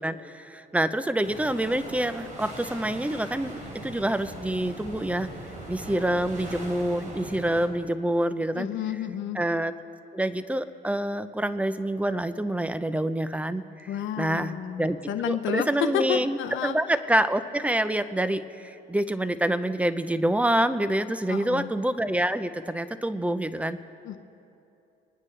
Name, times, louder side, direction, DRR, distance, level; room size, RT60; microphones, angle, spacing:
voice 1, 0.0-5.3 5.7-8.7 9.3-9.7 10.1-13.9 14.2-15.0 15.2-23.8, right 1 dB, 5° right, 12 dB, 0.6 m, -27 dB
sound 1, 1.2-7.7, right 1 dB, 40° right, 3.2 m, -40 dB
voice 2, 8.5-9.4 13.9-15.7 15.9-16.8 21.3-21.7 24.0-24.2, left 10 dB, 80° left, 7 dB, 0.6 m, -31 dB
25.5 x 9.7 x 3.2 m, 2.8 s
cardioid pair, 90°, 20 cm